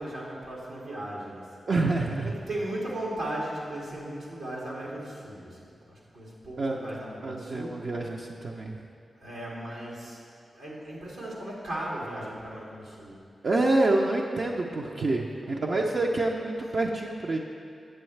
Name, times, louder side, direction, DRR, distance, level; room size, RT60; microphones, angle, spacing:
voice 1, 0.0-1.7 2.2-5.6 5.9-7.9 9.2-10.2 10.5-13.2 15.4-15.9, right 1 dB, 90° right, -6 dB, 1.9 m, -37 dB
voice 2, 1.7-2.3 6.6-8.9 13.4-17.4, right 2 dB, 65° right, -1 dB, 0.5 m, -27 dB
9.0 x 7.0 x 3.2 m, 2.4 s
cardioid pair, 40°, 0 cm